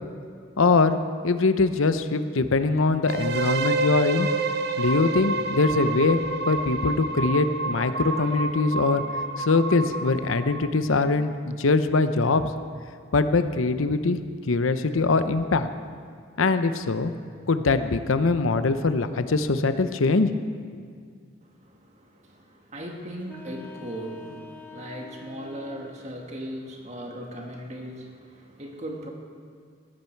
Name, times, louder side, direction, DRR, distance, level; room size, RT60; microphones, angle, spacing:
voice 1, 0.6-4.3 4.8-6.2 6.5-9.0 9.4-12.5 13.1-14.2 14.5-15.7 16.4-17.1 17.5-20.3, left 3 dB, 85° left, 10 dB, 0.7 m, -22 dB
sound 1, 3.1-10.9, right 2 dB, 50° right, 0.7 m, -29 dB
sound 2, 8.0-10.2, right 1 dB, 85° right, 1.5 m, -46 dB
voice 2, 21.4-29.1, right 1 dB, 35° right, 1 dB, 1.8 m, -38 dB
sound 3, 23.2-26.2, left 4 dB, 10° left, 0.8 m, -46 dB
16.5 x 14.0 x 4.6 m, 2.1 s
head